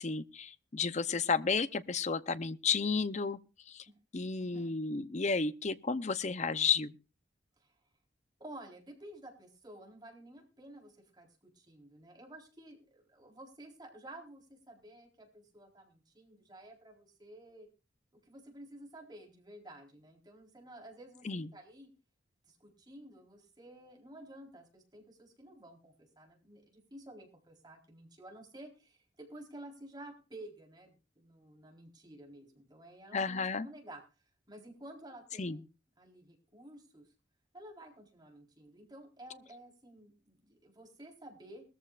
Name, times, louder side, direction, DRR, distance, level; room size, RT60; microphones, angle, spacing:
voice 1, 0.0-3.4 3.7-3.8 4.1-6.9 21.2-21.5 33.1-33.7 35.4-35.6, left 5 dB, 40° left, 0.7 m, -32 dB
voice 2, 4.4-4.7 7.6-7.8 8.4-17.7 18.3-21.3 21.5-21.9 22.5-34.0 34.5-35.7 36.0-37.1 37.5-41.6, right 1 dB, 25° right, 4.0 m, -52 dB
21.0 x 14.0 x 2.5 m
head